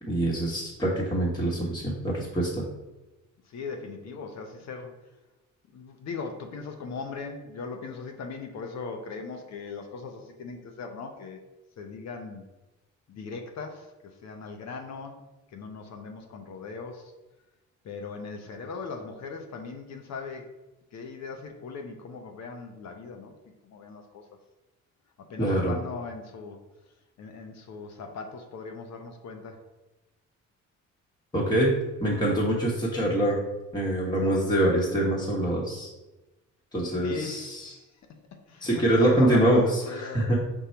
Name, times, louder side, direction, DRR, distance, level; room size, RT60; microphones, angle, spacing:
voice 1, 0.0-2.6 25.4-25.8 31.3-31.7 32.0-33.4 33.7-35.9 36.7-37.7 38.6-40.4, right 1 dB, 15° left, -5 dB, 1.1 m, -24 dB
voice 2, 3.4-5.1 5.7-11.4 11.8-12.5 13.1-15.2 15.5-17.1 17.8-20.5 20.9-23.3 23.6-24.3 25.3-26.6 27.2-29.6 37.0-37.8 38.5-40.4, left 4 dB, 60° left, 4 dB, 0.7 m, -39 dB
5.3 x 2.3 x 4.4 m, 1.0 s
cardioid pair, 90°, 30 cm